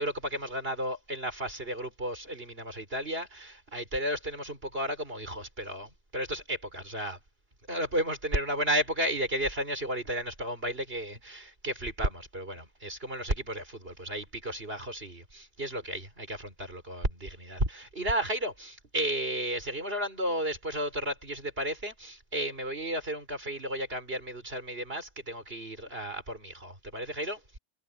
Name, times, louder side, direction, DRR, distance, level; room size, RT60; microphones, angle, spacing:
voice 1, 0.0-7.2 7.7-27.6, right 1 dB, 55° right, 5.5 m, -33 dB
omnidirectional pair, 1.2 m